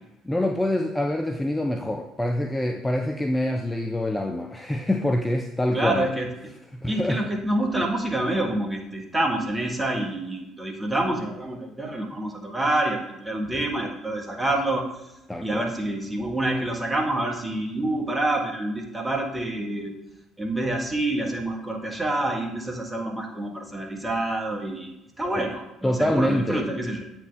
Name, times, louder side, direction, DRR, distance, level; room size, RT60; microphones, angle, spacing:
voice 1, 0.2-6.1 6.8-7.2 15.3-15.7 25.4-25.5 25.8-26.7, left 1 dB, 10° left, 4 dB, 0.5 m, -25 dB
voice 2, 5.7-6.3 6.9-15.0 15.4-19.9 20.4-24.9 25.2-27.0, right 1 dB, 15° right, 1 dB, 1.5 m, -27 dB
8.0 x 4.4 x 3.4 m, 0.91 s
figure-of-eight pair, 50°, 0 cm